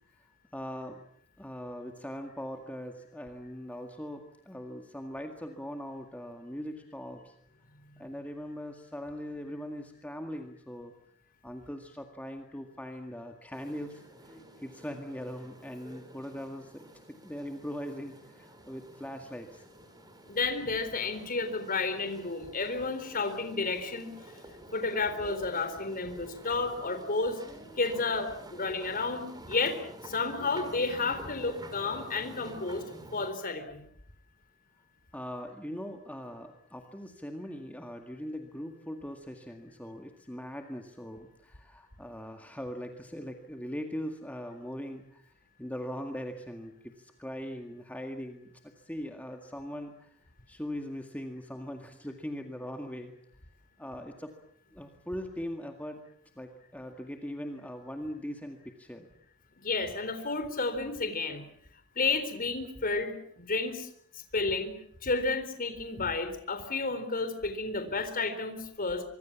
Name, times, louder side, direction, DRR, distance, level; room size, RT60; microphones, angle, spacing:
voice 1, 0.5-1.0 1.4-7.3 8.0-10.9 11.4-19.7 35.1-45.2 45.6-50.1 50.5-53.1 53.8-54.3 54.7-56.0 56.4-59.1, equal, 5° left, 4 dB, 2.0 m, -40 dB
sound 1, 13.5-33.3, right 1 dB, 20° right, 4.3 m, -49 dB
voice 2, 20.3-24.1 24.7-27.4 27.8-29.8 30.0-32.9 33.1-33.9 59.6-61.4 62.0-63.9 64.1-64.7 65.0-69.0, left 3 dB, 45° left, 9 dB, 4.1 m, -31 dB
25.0 x 24.5 x 7.3 m, 0.65 s
head